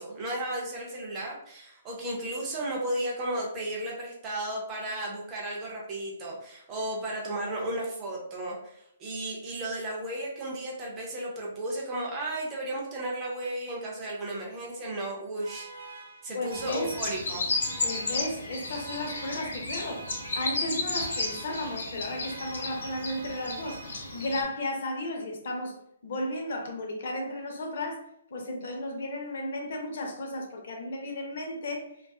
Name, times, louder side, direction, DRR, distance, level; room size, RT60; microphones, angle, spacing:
voice 1, 0.0-15.7 16.2-17.4, right 1 dB, 15° right, 0.4 m, -34 dB
sound 1, 15.4-24.4, right 3 dB, 80° right, 0.5 m, -46 dB
voice 2, 16.3-16.9 17.8-20.0 20.4-23.8 24.1-25.8 26.0-28.0 28.3-31.9, left 1 dB, 50° left, 0.5 m, -34 dB
sound 2, 16.5-24.4, left 3 dB, 70° left, 0.9 m, -33 dB
2.6 x 2.3 x 2.3 m
hypercardioid pair, 175°, 0 cm